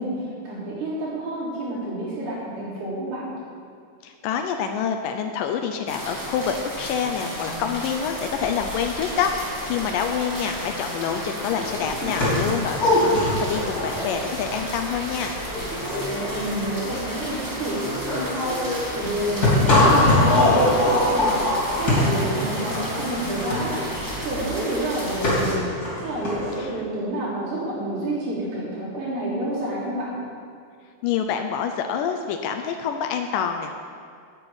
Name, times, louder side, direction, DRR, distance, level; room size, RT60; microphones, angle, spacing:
voice 1, 0.0-3.3 16.1-23.9 24.2-25.7 26.0-30.2, right 1 dB, 70° right, -8 dB, 5.8 m, -29 dB
voice 2, 4.0-15.4 26.6-26.7 31.0-33.7, left 7 dB, 85° left, 5 dB, 1.9 m, -27 dB
sound 1, 5.9-25.5, equal, 15° right, 0.7 m, -33 dB
sound 2, 11.2-11.3 11.5-26.5, left 2 dB, 25° left, 3.6 m, -23 dB
9.7 x 8.0 x 8.8 m, 2.3 s
omnidirectional pair, 4.7 m